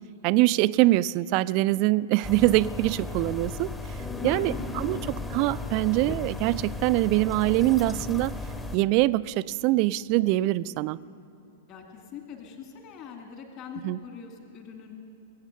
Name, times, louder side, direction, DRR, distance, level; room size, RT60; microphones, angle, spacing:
voice 1, 0.2-3.7 4.2-8.3 8.7-11.0 13.8-14.0, right 17 dB, 40° right, 18 dB, 0.3 m, -24 dB
sound 1, 2.2-8.8, left 3 dB, 10° left, 0.9 m, -35 dB
voice 2, 4.2-5.1 11.7-14.9, left 6 dB, 40° left, 3 dB, 2.3 m, -43 dB
21.0 x 8.8 x 6.7 m, 2.6 s
figure-of-eight pair, 100°, 0 cm